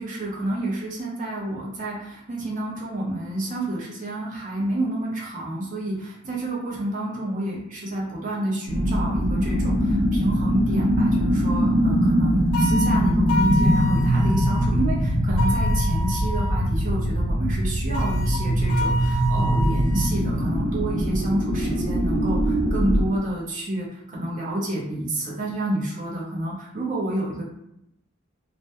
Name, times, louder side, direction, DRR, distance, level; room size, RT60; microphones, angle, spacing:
voice 1, 0.0-27.4, right 1 dB, 40° right, -4 dB, 0.6 m, -29 dB
sound 1, 8.7-23.1, equal, 90° right, 0.7 m, -22 dB
sound 2, 12.5-14.7 15.4-16.6 17.9-20.1, left 1 dB, 75° left, 0.4 m, -30 dB
2.2 x 2.1 x 2.8 m, 0.80 s
head